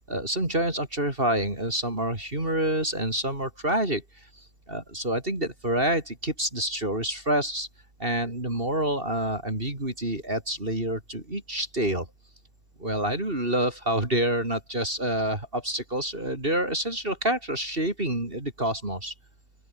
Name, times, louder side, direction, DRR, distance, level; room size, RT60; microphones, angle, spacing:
voice 1, 0.1-4.0 4.7-7.7 8.0-12.1 12.8-19.1, right 1 dB, 25° right, 4.5 m, -27 dB
open air
omnidirectional pair, 2.3 m